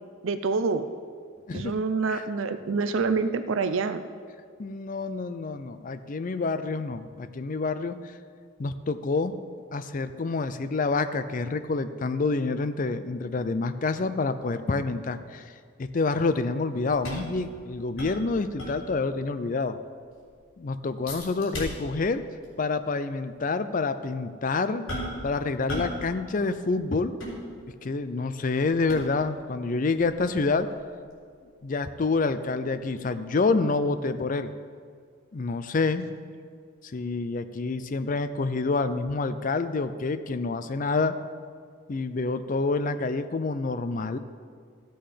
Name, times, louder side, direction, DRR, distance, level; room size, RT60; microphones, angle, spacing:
voice 1, 0.2-0.9 1.5-4.0, right 4 dB, 75° right, 10 dB, 0.5 m, -26 dB
voice 2, 4.6-8.1 8.6-9.3 9.7-15.4 15.8-19.8 20.6-22.2 22.6-24.8 25.2-27.1 27.8-30.7 31.6-34.5 35.3-36.1 36.9-41.2 41.9-44.2, left 3 dB, 40° left, 11 dB, 0.4 m, -27 dB
sound 1, 16.9-19.2 19.5-19.6 20.0-20.4 21.1-22.1 22.4-22.6 23.3-23.4 24.9-25.3 25.7-26.1 26.3-27.9 28.4-29.4 30.0-32.8 33.1-33.2, equal, 75° left, 3.4 m, -38 dB
13.5 x 7.8 x 5.1 m, 2.1 s
head